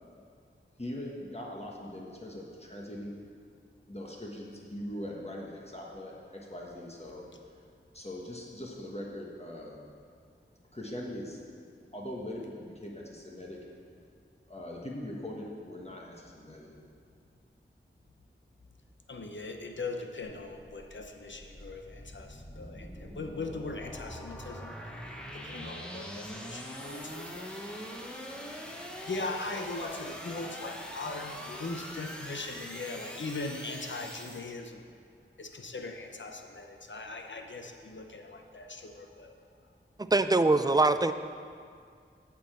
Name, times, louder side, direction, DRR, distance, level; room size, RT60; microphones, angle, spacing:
voice 1, 0.8-3.1 3.9-7.3 7.9-9.9 10.7-11.4 11.9-13.6 14.5-16.7, left 1 dB, 30° left, -3 dB, 1.2 m, -41 dB
voice 2, 19.1-24.8 25.3-34.9 35.4-39.4 39.6-39.7, left 3 dB, 65° left, 4 dB, 0.8 m, -40 dB
sound 1, 20.3-34.4, equal, 5° left, 1.0 m, -43 dB
voice 3, 40.1-41.1, right 2 dB, 20° right, 11 dB, 0.4 m, -23 dB
8.3 x 4.7 x 7.4 m, 2.2 s
wide cardioid pair, 50°, 21 cm